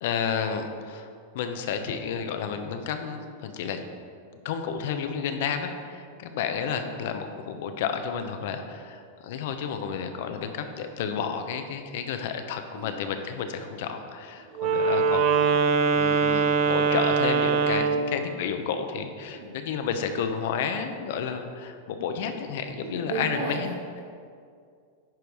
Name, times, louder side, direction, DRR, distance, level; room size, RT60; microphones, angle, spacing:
voice 1, 0.0-1.1 1.3-3.8 4.4-15.5 15.9-24.0, left 7 dB, 65° left, 7 dB, 0.8 m, -31 dB
Wind instrument woodwind instrument, 14.6-18.1, right 5 dB, 45° right, 0.7 m, -22 dB
voice 2, 17.8-18.2 19.3-19.5 22.8-23.6, right 4 dB, 75° right, -1 dB, 1.2 m, -34 dB
10.5 x 4.5 x 4.9 m, 2.3 s
hypercardioid pair, 125°, 0 cm